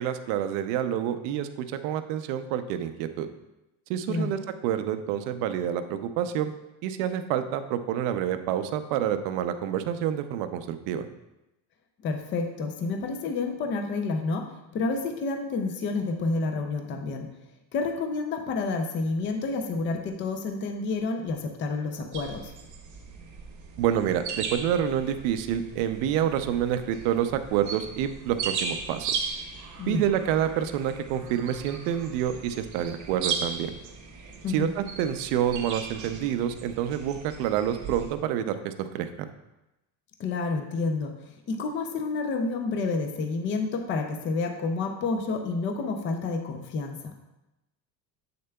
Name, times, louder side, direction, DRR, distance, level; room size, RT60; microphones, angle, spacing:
voice 1, 0.0-3.3 3.9-6.5 6.8-11.1 23.8-29.1 29.9-33.7 34.5-39.1, right 10 dB, 65° right, 9 dB, 0.7 m, -28 dB
voice 2, 12.0-17.3 17.7-22.5 29.8-30.1 34.4-34.7 40.2-47.1, left 3 dB, 25° left, 5 dB, 0.4 m, -29 dB
sound 1, 22.1-38.2, right 5 dB, 40° right, 0.9 m, -37 dB
7.7 x 6.6 x 2.3 m, 0.96 s
cardioid pair, 150°, 49 cm